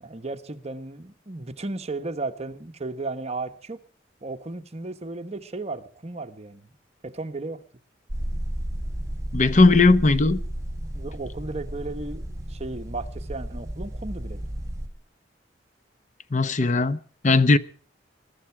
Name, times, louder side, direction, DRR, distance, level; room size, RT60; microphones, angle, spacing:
voice 1, 0.0-3.8 4.2-6.7 7.0-7.6 10.9-14.4, right 3 dB, 35° right, 1.2 m, -34 dB
sound 1, 8.1-14.9, right 1 dB, 20° right, 3.5 m, -33 dB
voice 2, 9.3-10.4 16.3-17.0 17.2-17.6, left 3 dB, 40° left, 0.8 m, -18 dB
22.0 x 13.0 x 4.6 m
head